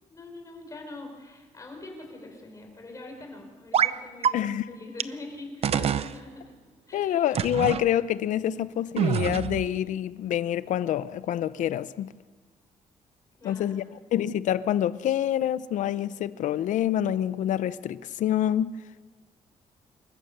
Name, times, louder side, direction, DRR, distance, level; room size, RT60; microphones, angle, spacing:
voice 1, 0.1-6.4 6.9-7.3 13.4-13.8, left 2 dB, 25° left, 5.0 m, -43 dB
sound 1, 3.7-4.0 4.2-4.3 5.0-5.1 5.6-6.1 7.3-7.8 9.0-9.7, right 9 dB, 55° right, 0.7 m, -25 dB
voice 2, 4.3-4.6 6.9-12.1 13.4-13.8 14.1-18.7, left 11 dB, 80° left, 0.7 m, -27 dB
27.5 x 14.5 x 6.6 m
cardioid pair, 140°, 13 cm